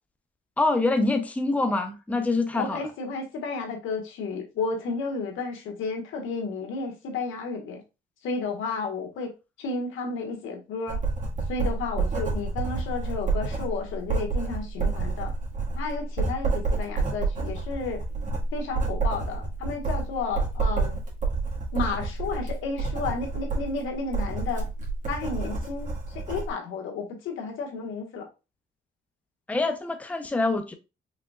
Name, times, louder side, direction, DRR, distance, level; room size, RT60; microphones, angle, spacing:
voice 1, 0.6-2.8 29.5-30.7, left 2 dB, 5° left, 0.5 m, -25 dB
voice 2, 2.5-7.8 8.2-9.3 9.6-11.0 11.5-15.3 15.7-18.0 18.5-21.0 21.7-24.6 25.0-25.9 26.1-28.3, left 4 dB, 85° left, 1.3 m, -32 dB
Writing, 10.9-26.5, right 3 dB, 40° right, 1.8 m, -29 dB
4.9 x 3.5 x 2.3 m
cardioid pair, 90°, 20 cm